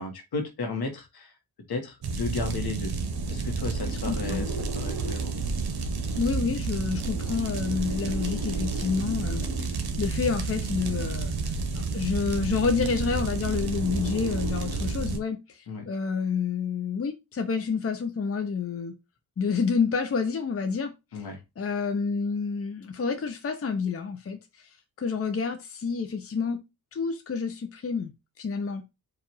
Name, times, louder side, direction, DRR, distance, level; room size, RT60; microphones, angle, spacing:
voice 1, 0.0-1.3 1.7-2.9 3.3-5.3 15.7-15.9 21.1-21.4, left 3 dB, 75° left, 1.4 m, -34 dB
sound 1, 2.0-15.2, right 4 dB, 80° right, 1.0 m, -30 dB
voice 2, 3.9-4.5 6.2-11.3 11.7-19.0 19.4-21.2 21.6-24.4 25.0-26.6 26.9-28.1 28.4-28.8, left 5 dB, 35° left, 0.7 m, -29 dB
4.8 x 2.5 x 4.4 m
wide cardioid pair, 105°, 38 cm